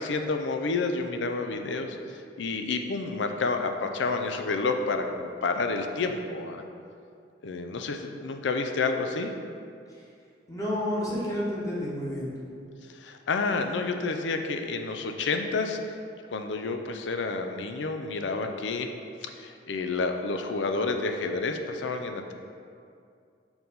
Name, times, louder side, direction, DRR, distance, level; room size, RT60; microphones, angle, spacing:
voice 1, 0.0-6.6 7.4-9.3 13.0-15.8 16.3-18.9 19.2-22.3, left 3 dB, 85° left, 6 dB, 0.5 m, -29 dB
voice 2, 10.5-12.5, left 1 dB, 20° left, -6 dB, 1.1 m, -30 dB
4.7 x 3.8 x 5.4 m, 2.4 s
head